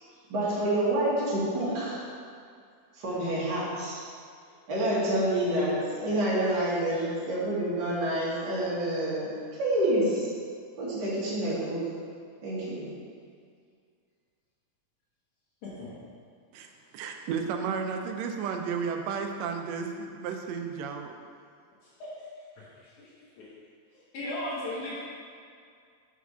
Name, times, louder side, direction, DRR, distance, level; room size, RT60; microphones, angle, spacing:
voice 1, 0.3-2.0 2.9-4.0 4.7-9.3 9.6-10.3 10.8-11.9 12.4-12.8, right 1 dB, 40° right, -9 dB, 2.1 m, -28 dB
voice 2, 16.9-21.2, right 6 dB, 75° right, 4 dB, 1.7 m, -33 dB
voice 3, 23.9-25.0, left 1 dB, 85° left, -11 dB, 2.8 m, -36 dB
6.0 x 4.8 x 5.6 m, 2.2 s
omnidirectional pair, 3.3 m